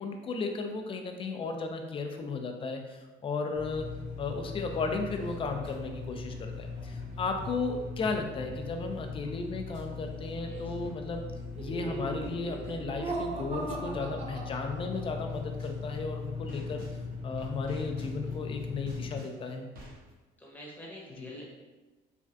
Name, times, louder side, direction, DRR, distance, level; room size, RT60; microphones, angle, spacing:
voice 1, 0.0-3.9 4.2-11.3 11.6-16.8 17.2-19.7 21.2-21.3, left 4 dB, 30° left, 4 dB, 0.4 m, -35 dB
sound 1, 3.5-19.2, left 4 dB, 90° right, 1.5 m, -40 dB
Laughter, 11.5-15.3, right 2 dB, 40° right, 0.5 m, -38 dB
sound 2, 15.3-17.0 17.4-20.1, right 1 dB, 60° right, 1.0 m, -51 dB
voice 2, 20.4-21.5, left 1 dB, 10° left, -4 dB, 0.8 m, -46 dB
3.3 x 2.3 x 2.6 m, 1.2 s
cardioid pair, 110°, 17 cm